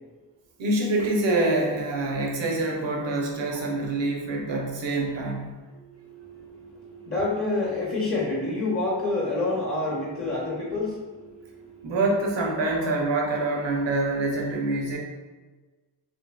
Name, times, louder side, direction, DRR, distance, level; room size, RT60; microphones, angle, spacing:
voice 1, 0.6-5.6 11.8-15.0, right 2 dB, 80° right, 0 dB, 0.6 m, -26 dB
voice 2, 5.7-12.0, left 2 dB, 30° left, -5 dB, 0.6 m, -29 dB
2.6 x 2.6 x 2.2 m, 1.3 s
cardioid pair, 40°, 44 cm